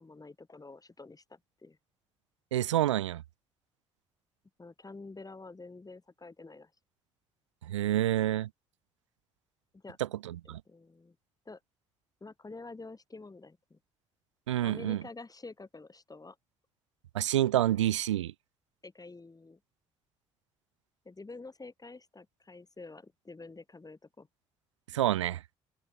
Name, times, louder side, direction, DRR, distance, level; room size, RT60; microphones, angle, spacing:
voice 1, 0.0-1.8 4.6-6.7 9.7-10.0 10.4-11.1 11.4-11.6 12.2-13.8 14.6-16.4 18.8-19.6 21.0-24.3, left 3 dB, 25° left, 4.9 m, -48 dB
voice 2, 2.5-3.2 7.7-8.5 10.2-10.6 14.5-15.0 17.1-18.3 24.9-25.4, right 13 dB, 85° right, 0.4 m, -28 dB
open air
figure-of-eight pair, 40°, 15 cm